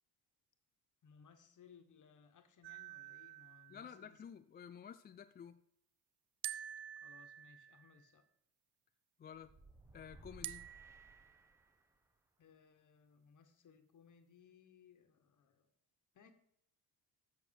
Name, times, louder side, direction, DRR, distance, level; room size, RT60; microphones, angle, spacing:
voice 1, 1.0-4.2 7.0-8.2 12.4-15.7 16.1-16.3, left 6 dB, 50° left, 1.4 m, -64 dB
sound 1, 2.6-4.1 6.4-8.1 10.4-11.5, right 12 dB, 75° right, 0.6 m, -49 dB
voice 2, 3.7-5.6 9.2-9.5 9.9-10.7, left 8 dB, 25° left, 0.4 m, -52 dB
sound 2, 9.3-12.0, right 2 dB, 5° right, 0.9 m, -60 dB
7.6 x 6.5 x 6.5 m
cardioid pair, 90°, 40 cm